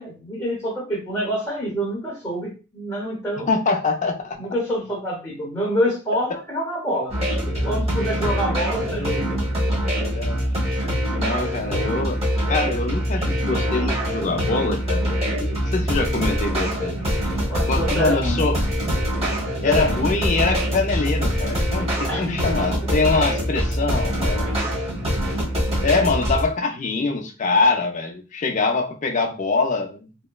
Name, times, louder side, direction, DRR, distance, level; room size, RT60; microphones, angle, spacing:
voice 1, 0.0-3.5 4.4-7.1 7.4-9.4 17.4-18.4 19.5-20.0 22.1-22.8 24.4-24.5, equal, 10° left, -6 dB, 0.8 m, -27 dB
voice 2, 3.5-4.4 10.0-10.4 11.1-12.2 12.5-16.9 17.7-18.6 19.6-24.5 25.8-30.1, left 3 dB, 35° left, 3 dB, 0.4 m, -24 dB
sound 1, 7.1-26.4, equal, 30° right, 1.1 m, -24 dB
2.9 x 2.1 x 2.3 m, 0.33 s
head